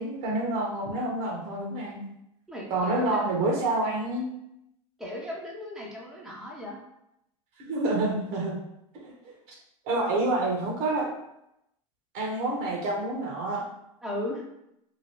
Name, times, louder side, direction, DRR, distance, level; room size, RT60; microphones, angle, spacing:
voice 1, 0.0-2.1 2.7-4.3 7.7-8.6 8.9-9.3 9.9-11.1 12.1-13.6, right 2 dB, 55° right, -1 dB, 1.1 m, -28 dB
voice 2, 2.5-3.3 5.0-6.8 14.0-14.4, left 1 dB, ahead, -4 dB, 0.8 m, -36 dB
2.9 x 2.6 x 3.0 m, 0.81 s
hypercardioid pair, 95°, 18 cm